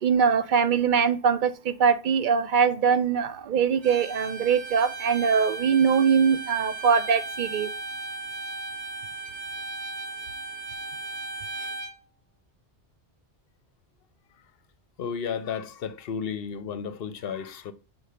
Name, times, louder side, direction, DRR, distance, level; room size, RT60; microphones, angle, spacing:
voice 1, 0.0-7.7, right 6 dB, 55° right, 0.6 m, -22 dB
Bowed string instrument, 3.8-11.9, right 3 dB, 75° right, 2.8 m, -36 dB
voice 2, 15.0-17.7, left 7 dB, 60° left, 0.8 m, -33 dB
5.6 x 4.6 x 4.9 m
omnidirectional pair, 1.2 m